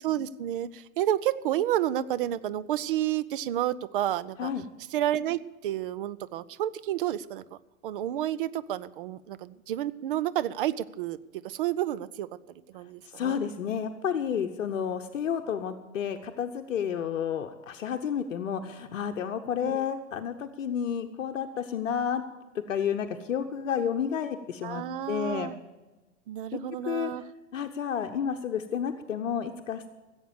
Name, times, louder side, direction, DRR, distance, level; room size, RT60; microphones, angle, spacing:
voice 1, 0.0-4.5 4.9-7.6 7.8-13.4 19.6-19.9 24.6-25.5 26.3-27.2, right 12 dB, 40° right, 17 dB, 0.5 m, -30 dB
voice 2, 13.0-22.2 22.5-25.5 26.9-27.1 27.5-29.9, left 8 dB, 65° left, 6 dB, 0.9 m, -31 dB
16.0 x 8.1 x 7.0 m, 1.2 s
figure-of-eight pair, 105°, 41 cm